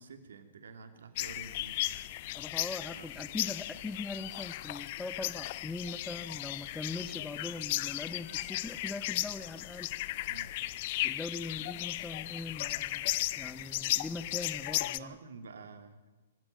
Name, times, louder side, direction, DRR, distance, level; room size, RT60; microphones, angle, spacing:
voice 1, 0.0-1.9 2.9-3.1 10.3-10.5 15.0-16.0, right 4 dB, 70° right, 8 dB, 2.9 m, -49 dB
sound 1, 1.2-15.0, left 17 dB, 45° left, 0.7 m, -36 dB
voice 2, 2.3-9.9 11.0-15.2, left 3 dB, 5° left, 12 dB, 0.9 m, -41 dB
25.5 x 13.0 x 9.1 m, 1.1 s
hypercardioid pair, 125°, 0 cm